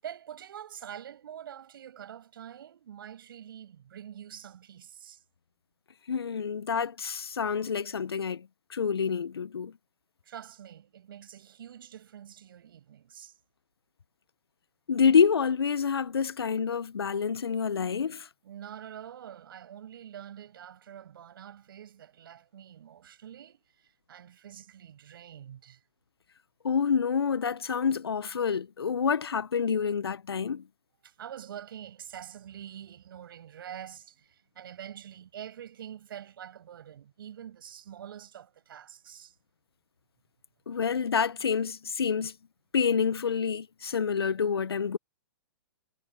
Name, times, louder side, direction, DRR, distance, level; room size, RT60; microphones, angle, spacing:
voice 1, 0.0-5.2 10.2-13.4 18.4-25.8 31.0-39.4, right 10 dB, 60° right, 7.1 m, -46 dB
voice 2, 6.1-9.7 14.9-18.3 26.6-30.6 40.7-42.3 42.7-45.0, left 6 dB, 80° left, 1.0 m, -27 dB
hypercardioid pair, 125°, 13 cm